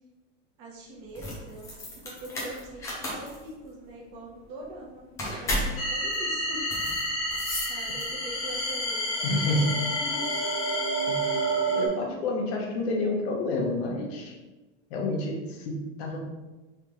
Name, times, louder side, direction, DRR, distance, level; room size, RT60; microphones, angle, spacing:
voice 1, 0.6-1.7 2.0-5.1 5.4-6.6 7.7-10.4, right 1 dB, 35° right, -2 dB, 1.0 m, -42 dB
sound 1, 1.0-8.4, left 1 dB, 10° left, 0.3 m, -35 dB
sound 2, 5.8-11.9, right 1 dB, 30° left, 0.8 m, -29 dB
voice 2, 9.2-9.8 11.1-11.2 11.8-14.3 14.9-16.2, left 2 dB, 55° left, 0 dB, 1.0 m, -29 dB
3.6 x 3.4 x 3.0 m, 1.1 s
supercardioid pair, 150°, 38 cm